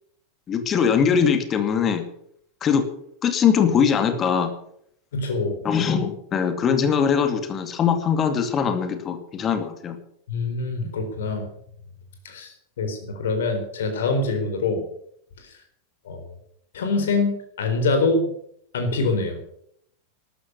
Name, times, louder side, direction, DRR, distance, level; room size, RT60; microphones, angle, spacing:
voice 1, 0.5-2.0 2.6-2.8 3.2-4.5 5.6-10.0, left 7 dB, 25° left, 8 dB, 2.4 m, -21 dB
voice 2, 5.1-5.6 10.3-11.5 12.2-14.8 15.4-15.5 16.0-16.3 16.7-18.2 18.7-19.4, left 3 dB, 60° left, 6 dB, 4.2 m, -25 dB
13.5 x 13.0 x 6.9 m, 0.68 s
figure-of-eight pair, 90°, 0 cm